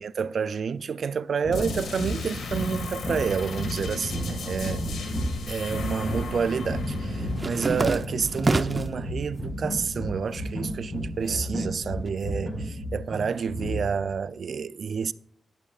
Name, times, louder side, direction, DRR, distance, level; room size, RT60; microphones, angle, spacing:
voice 1, 0.0-4.8 5.5-15.1, right 6 dB, 60° right, 0.4 m, -29 dB
sound 1, 1.4-14.1, equal, 15° left, 4.6 m, -33 dB
sound 2, 1.5-9.1, left 3 dB, 80° left, 1.8 m, -36 dB
sound 3, 6.4-9.0 9.5-10.1 10.4-12.1, right 3 dB, 30° right, 0.7 m, -30 dB
11.5 x 11.0 x 2.4 m
cardioid pair, 95°, 0 cm